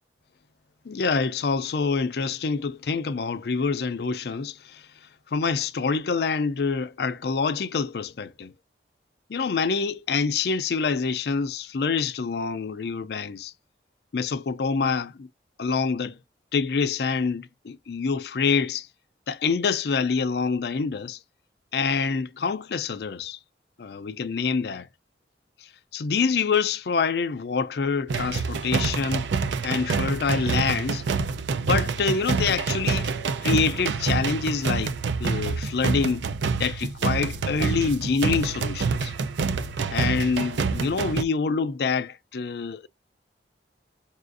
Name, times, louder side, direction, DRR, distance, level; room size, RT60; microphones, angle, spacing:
voice 1, 0.8-4.9 5.3-8.5 9.3-13.5 14.1-15.3 15.6-16.2 16.5-18.9 19.3-21.2 21.7-23.4 23.8-24.9 25.6-29.3 29.6-31.0 31.6-33.1 33.4-34.9 35.2-36.3 36.6-39.1 39.9-42.9, left 5 dB, 65° left, 0.4 m, -26 dB
sound 1, 28.1-41.2, right 4 dB, 85° right, 0.5 m, -27 dB
5.4 x 2.5 x 2.5 m
head